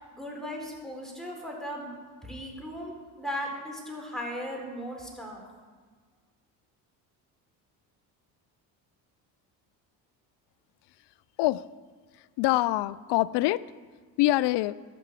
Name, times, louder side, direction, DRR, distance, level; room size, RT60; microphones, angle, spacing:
voice 1, 0.1-2.0 2.2-5.4, equal, ahead, -1 dB, 4.1 m, -37 dB
voice 2, 12.4-13.6 14.2-14.7, left 17 dB, 60° left, 20 dB, 0.5 m, -24 dB
12.0 x 6.0 x 8.3 m, 1.5 s
hypercardioid pair, 65°, 49 cm